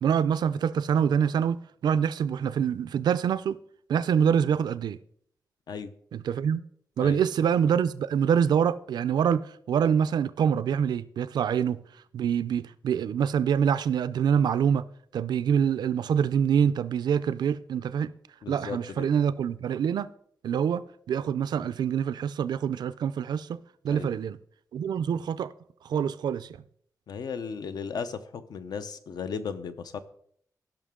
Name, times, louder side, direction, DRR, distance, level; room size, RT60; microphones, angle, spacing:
voice 1, 0.0-3.6 3.9-5.0 6.1-6.6 7.0-11.8 12.1-14.8 15.1-18.1 18.5-20.1 20.4-23.6 23.8-24.4 24.7-25.5 25.8-26.5, right 8 dB, 85° right, 0.4 m, -25 dB
voice 2, 18.4-19.1 23.9-24.1 27.1-30.0, left 6 dB, 70° left, 0.7 m, -36 dB
16.5 x 5.9 x 3.7 m
wide cardioid pair, 145°, 7 cm